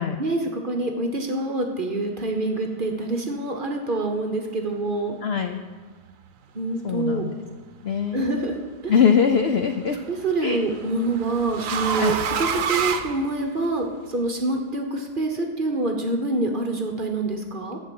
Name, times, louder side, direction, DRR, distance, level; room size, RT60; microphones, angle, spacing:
voice 1, 0.0-5.2 6.5-7.2 8.1-8.6 8.8-8.9 10.1-17.8, right 2 dB, 40° right, 3 dB, 1.0 m, -26 dB
voice 2, 5.2-5.6 6.8-7.3 7.8-8.4 8.9-10.0 10.4-10.6 12.0-12.1, left 7 dB, 65° left, 6 dB, 0.6 m, -22 dB
sound 1, 7.9-8.4 9.9-13.8, right 7 dB, 60° right, 1.0 m, -29 dB
13.0 x 4.4 x 8.5 m, 1.4 s
omnidirectional pair, 1.7 m